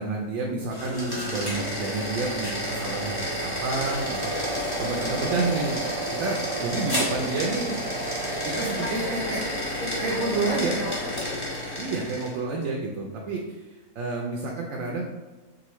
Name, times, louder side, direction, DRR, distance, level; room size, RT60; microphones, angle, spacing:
voice 1, 0.0-4.3 4.8-5.8 6.1-7.7 8.4-9.4 10.0-10.8 11.8-15.0, right 3 dB, 70° right, 0 dB, 0.9 m, -29 dB
sound 1, 0.6-12.4, equal, 20° left, 0.9 m, -30 dB
voice 2, 8.8-11.5, left 3 dB, 65° left, 2 dB, 0.9 m, -37 dB
4.9 x 2.5 x 3.0 m, 1.2 s
omnidirectional pair, 1.5 m